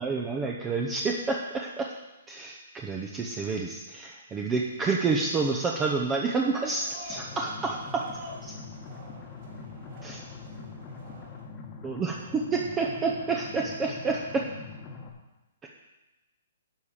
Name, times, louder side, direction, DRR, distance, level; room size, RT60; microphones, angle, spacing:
voice 1, 0.0-1.9 2.3-8.0 8.4-8.5 10.0-10.2 11.8-14.4 15.6-15.7, right 4 dB, 15° right, 0 dB, 0.7 m, -29 dB
sound 1, 6.3-11.4, equal, 45° right, 4.4 m, -48 dB
sound 2, 7.1-15.1, left 4 dB, 20° left, 1.2 m, -43 dB
12.0 x 4.9 x 7.2 m, 1.0 s
hypercardioid pair, 160°, 0 cm